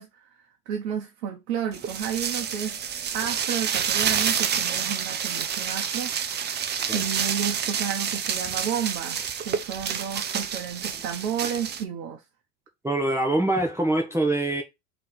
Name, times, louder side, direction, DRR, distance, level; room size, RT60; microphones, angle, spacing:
voice 1, 0.0-2.8 3.1-6.6 6.9-12.2, right 8 dB, 70° right, 1.1 m, -32 dB
sound 1, 1.7-11.8, right 7 dB, 20° right, 0.6 m, -28 dB
voice 2, 12.8-14.6, right 2 dB, 5° right, 1.0 m, -24 dB
3.8 x 3.3 x 4.0 m
hypercardioid pair, 95°, 48 cm